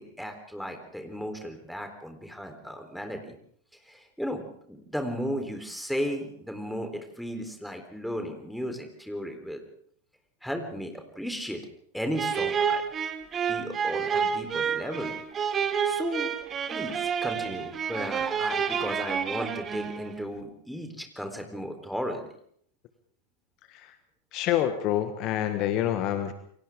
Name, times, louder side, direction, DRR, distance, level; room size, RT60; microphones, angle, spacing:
voice 1, 0.0-3.4 3.8-6.9 7.2-9.6 10.4-11.6 11.9-12.8 13.5-15.1 15.9-16.3 16.7-22.3, equal, ahead, 5 dB, 3.9 m, -35 dB
sound 1, 12.1-20.2, right 7 dB, 25° right, 1.8 m, -29 dB
voice 2, 24.3-26.3, left 11 dB, 40° left, 9 dB, 1.6 m, -27 dB
29.0 x 24.0 x 3.7 m, 0.65 s
figure-of-eight pair, 90°, 0 cm